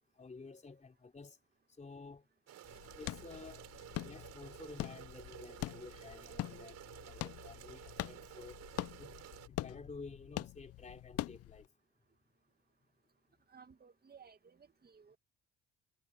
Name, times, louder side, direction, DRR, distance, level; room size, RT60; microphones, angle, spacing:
voice 1, 0.2-1.4 1.8-2.3 3.0-3.7 4.0-8.6 9.0-9.1 9.5-11.7, left 4 dB, 25° left, 3.8 m, -52 dB
sound 1, 2.5-9.5, right 11 dB, 60° right, 6.1 m, -53 dB
sound 2, 2.6-11.7, left 15 dB, 55° left, 0.5 m, -44 dB
voice 2, 13.5-15.2, right 6 dB, 30° right, 2.2 m, -59 dB
supercardioid pair, 70°, 29 cm